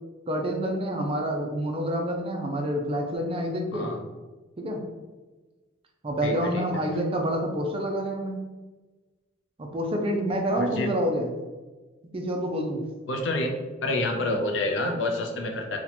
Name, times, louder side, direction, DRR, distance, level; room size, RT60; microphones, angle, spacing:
voice 1, 0.3-4.0 4.6-4.8 6.0-8.4 9.6-11.3 12.1-12.8, equal, 25° right, 2 dB, 0.4 m, -28 dB
voice 2, 3.7-4.0 6.2-6.7 10.6-10.9 13.1-13.6 13.8-15.8, left 2 dB, 65° left, 3 dB, 0.5 m, -28 dB
2.9 x 2.2 x 4.0 m, 1.3 s
head